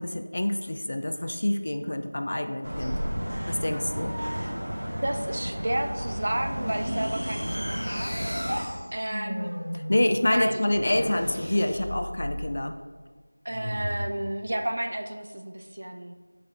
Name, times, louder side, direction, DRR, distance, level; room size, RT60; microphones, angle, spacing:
voice 1, 0.0-3.0 3.5-4.2 9.7-12.8, left 1 dB, 35° left, 7 dB, 0.3 m, -27 dB
sound 1, 2.6-8.6, equal, 60° right, 1.1 m, -32 dB
voice 2, 5.0-8.1 8.9-9.5 10.2-10.6 13.4-16.1, right 1 dB, 40° right, 6 dB, 0.4 m, -31 dB
sound 2, 6.6-12.6 13.5-14.1, equal, 60° left, 1.1 m, -36 dB
5.9 x 4.8 x 4.1 m, 1.5 s
figure-of-eight pair, 175°, 0 cm